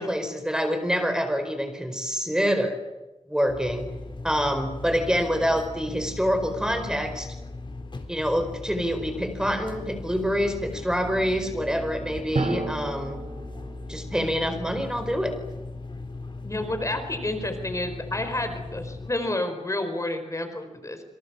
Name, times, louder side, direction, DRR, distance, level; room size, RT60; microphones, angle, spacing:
voice 1, 0.0-2.8 3.3-3.8 4.2-7.3 8.1-13.2 13.9-15.4, equal, 5° right, 7 dB, 4.7 m, -26 dB
sound 1, 3.5-19.1, left 2 dB, 45° left, 3.9 m, -38 dB
Drum, 12.3-14.6, right 3 dB, 75° right, 4.5 m, -32 dB
voice 2, 16.4-21.0, left 1 dB, 25° left, 7 dB, 4.5 m, -30 dB
28.5 x 26.0 x 7.2 m, 1.1 s
wide cardioid pair, 115°, 11 cm